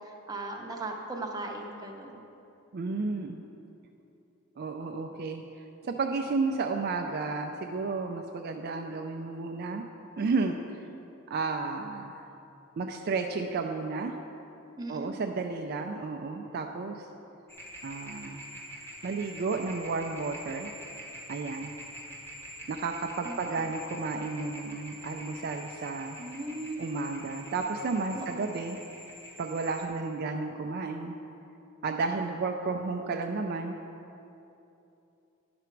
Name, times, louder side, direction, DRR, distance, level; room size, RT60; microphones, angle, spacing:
voice 1, 0.3-2.2 14.8-15.1 23.2-23.4 26.2-27.0 28.1-28.4, right 2 dB, 20° right, 1 dB, 0.7 m, -37 dB
voice 2, 2.7-3.4 4.6-9.8 10.2-10.6 11.3-12.3 12.8-14.1 14.9-17.1 17.8-18.5 19.0-20.7 21.3-21.7 22.7-26.2 26.8-28.8 29.4-31.2 31.8-33.8, right 4 dB, 45° right, 4 dB, 0.4 m, -32 dB
sound 1, 17.5-29.9, equal, 10° left, 1.1 m, -45 dB
10.5 x 5.9 x 4.5 m, 2.9 s
head